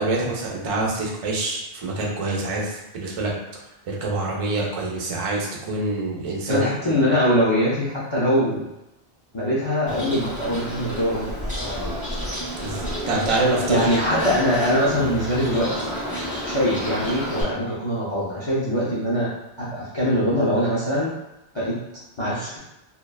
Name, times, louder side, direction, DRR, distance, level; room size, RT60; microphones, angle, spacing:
voice 1, 0.0-3.3 3.9-7.3 12.6-14.3, right 2 dB, 50° right, -1 dB, 0.4 m, -26 dB
voice 2, 6.5-8.7 9.3-11.3 11.6-11.9 13.7-15.9 16.4-19.3 19.6-21.1 21.5-21.8 22.2-22.6, equal, 40° left, -8 dB, 0.4 m, -22 dB
Bird, 9.9-17.4, equal, 10° right, 0.6 m, -30 dB
2.6 x 2.2 x 2.3 m, 0.92 s
omnidirectional pair, 1.1 m